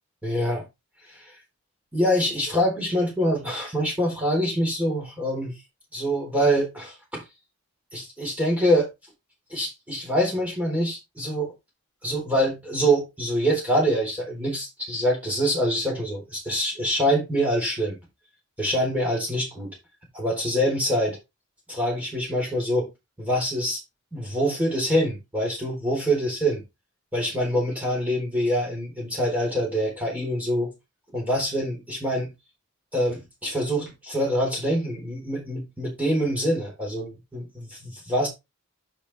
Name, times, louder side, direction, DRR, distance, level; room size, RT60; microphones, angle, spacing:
voice 1, 0.2-0.6 1.1-1.3 1.9-5.5 5.9-7.2 7.9-8.9 9.5-11.5 12.0-18.0 18.6-19.7 20.1-21.2 21.7-22.9 23.2-23.8 24.1-26.6 27.1-30.7 31.1-32.3 32.9-38.3, equal, 5° right, 3.9 m, -25 dB
10.0 x 5.4 x 3.4 m
head